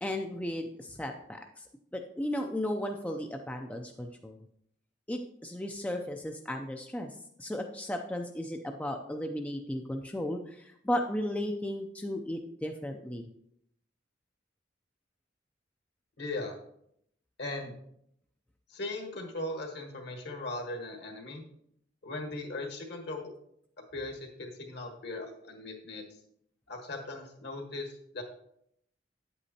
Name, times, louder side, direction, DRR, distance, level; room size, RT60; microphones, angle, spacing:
voice 1, 0.0-1.6 1.9-4.4 5.1-7.1 7.4-13.2, left 1 dB, 5° left, 3 dB, 0.4 m, -35 dB
voice 2, 16.2-16.5 17.4-17.7 18.7-21.4 22.0-23.3 23.9-26.1 26.7-28.2, left 2 dB, 60° left, 3 dB, 1.5 m, -38 dB
8.9 x 8.2 x 2.8 m, 0.72 s
head